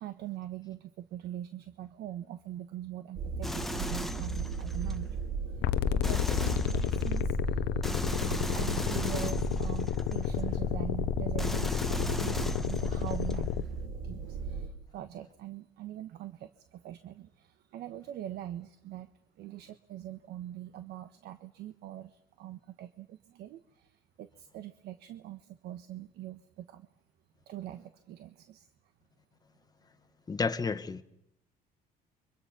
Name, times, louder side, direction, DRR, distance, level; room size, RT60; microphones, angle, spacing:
voice 1, 0.0-7.8 8.6-13.7 14.0-19.1 19.4-26.9 27.5-28.7, right 12 dB, 75° right, 1.2 m, -43 dB
sound 1, 3.1-14.7, right 4 dB, 55° right, 3.4 m, -36 dB
sound 2, 3.4-5.0 6.0-7.2 7.8-10.4 11.4-13.4, left 1 dB, ahead, 1.2 m, -39 dB
sound 3, 5.6-13.6, left 13 dB, 80° left, 0.8 m, -31 dB
voice 2, 30.3-31.0, left 4 dB, 25° left, 1.5 m, -31 dB
29.0 x 24.5 x 6.0 m
cardioid pair, 110°, 17 cm